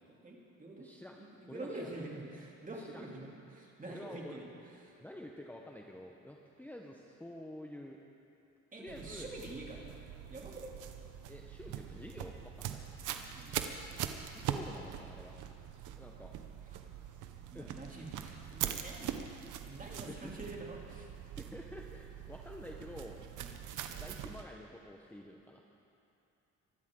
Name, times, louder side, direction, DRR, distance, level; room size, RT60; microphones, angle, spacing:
voice 1, 0.2-4.4 4.8-5.0 8.7-10.0 10.3-10.7 13.1-13.6 16.2-16.3 16.7-16.8 17.5-19.2 19.6-21.1 23.4-23.5, right 2 dB, 25° right, -2 dB, 3.0 m, -46 dB
voice 2, 0.8-1.2 1.5-1.9 2.8-3.0 3.9-4.4 5.0-8.0 8.8-9.3 11.3-12.8 14.2-15.3 16.0-16.3 17.5-17.8 20.1-20.3 21.4-23.2 23.9-25.6, left 1 dB, 5° left, 0 dB, 1.0 m, -49 dB
sound 1, 8.9-24.4, right 10 dB, 85° right, 0.9 m, -43 dB
24.5 x 12.5 x 3.8 m, 2.8 s
cardioid pair, 90°, 30 cm